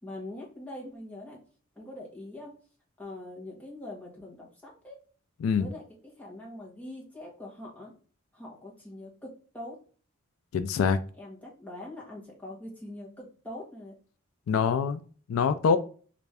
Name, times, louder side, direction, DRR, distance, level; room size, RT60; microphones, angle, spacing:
voice 1, 0.0-1.4 1.7-2.5 3.0-5.0 5.5-5.8 6.2-7.9 8.3-9.8 11.2-13.9, left 1 dB, 5° left, 1.0 m, -43 dB
voice 2, 10.5-11.0 14.5-15.0 15.3-15.8, left 6 dB, 80° left, 0.3 m, -24 dB
3.2 x 2.5 x 3.3 m
head